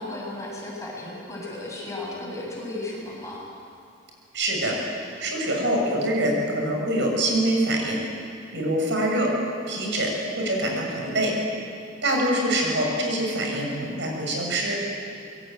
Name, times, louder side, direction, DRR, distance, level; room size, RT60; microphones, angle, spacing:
voice 1, 0.0-3.4, left 2 dB, 15° left, -3 dB, 7.8 m, -34 dB
voice 2, 4.3-4.8 5.2-8.0 8.5-9.3 9.7-11.3 12.0-14.8, right 1 dB, 70° right, 0 dB, 7.0 m, -24 dB
26.0 x 22.5 x 9.3 m, 2.4 s
head